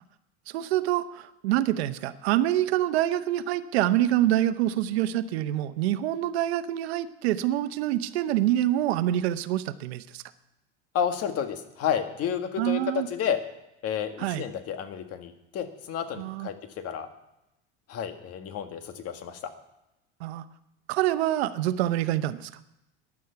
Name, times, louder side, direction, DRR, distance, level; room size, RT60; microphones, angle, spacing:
voice 1, 0.5-10.2 12.6-13.1 14.2-14.5 16.2-16.5 20.2-20.4 20.9-22.5, right 13 dB, 85° right, 13 dB, 0.9 m, -26 dB
voice 2, 10.9-13.4 13.8-16.5 16.8-17.1 17.9-19.4, left 8 dB, 50° left, 7 dB, 1.8 m, -31 dB
15.0 x 11.0 x 5.8 m, 0.89 s
supercardioid pair, 105°, 31 cm